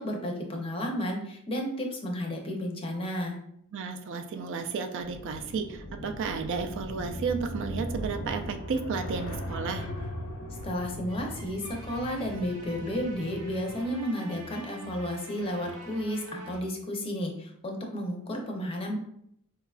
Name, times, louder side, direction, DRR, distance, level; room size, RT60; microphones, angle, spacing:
voice 1, 0.0-3.4 10.6-19.0, equal, 25° left, 1 dB, 0.5 m, -32 dB
voice 2, 3.7-9.9, right 5 dB, 60° right, 6 dB, 0.3 m, -32 dB
whoosh motron very low, 5.0-13.8, left 1 dB, 65° left, 0.6 m, -39 dB
sound 1, 9.5-16.6, right 2 dB, 85° right, 0.7 m, -46 dB
4.5 x 2.2 x 2.3 m, 0.72 s
head